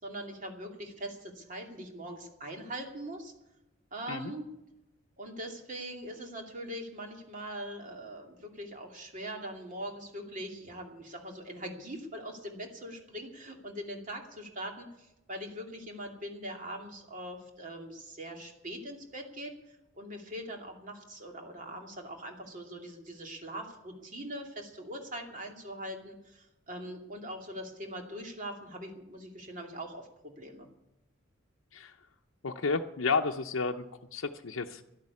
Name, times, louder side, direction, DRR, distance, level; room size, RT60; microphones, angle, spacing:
voice 1, 0.0-3.3 3.9-4.5 5.2-30.7, right 1 dB, 40° right, 2 dB, 2.6 m, -42 dB
voice 2, 32.4-33.8 34.1-34.8, left 4 dB, 75° left, 2 dB, 0.7 m, -31 dB
12.0 x 11.5 x 8.4 m, 0.90 s
head